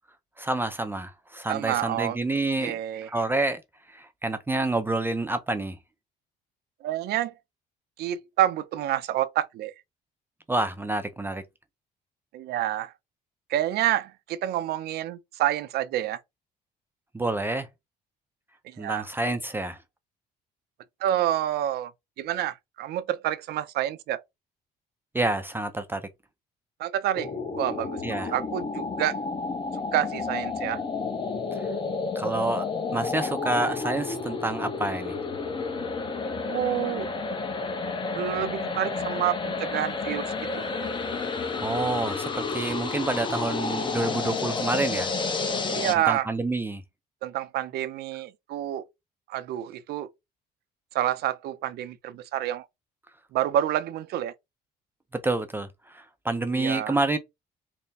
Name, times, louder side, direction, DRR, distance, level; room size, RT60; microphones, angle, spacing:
voice 1, 0.4-2.8 3.1-3.6 3.9-5.8 10.5-11.4 17.1-17.7 18.8-19.8 25.1-26.1 28.0-28.3 31.5-31.7 32.2-35.2 41.6-45.1 46.0-46.8 55.1-57.2, right 2 dB, 15° right, 0.4 m, -28 dB
voice 2, 1.5-2.2 2.6-3.1 6.8-7.3 8.0-9.7 12.3-12.9 13.5-16.2 18.6-19.0 21.0-21.9 22.2-24.2 26.8-27.3 27.6-29.2 29.7-30.8 36.5-37.1 38.1-40.7 45.7-46.3 47.2-48.9 49.3-50.1 50.9-52.7 53.3-54.3 56.5-57.0, right 12 dB, 70° right, 0.5 m, -28 dB
sound 1, 27.1-45.9, left 4 dB, 30° left, 0.7 m, -31 dB
3.4 x 2.1 x 4.1 m
cardioid pair, 110°, 17 cm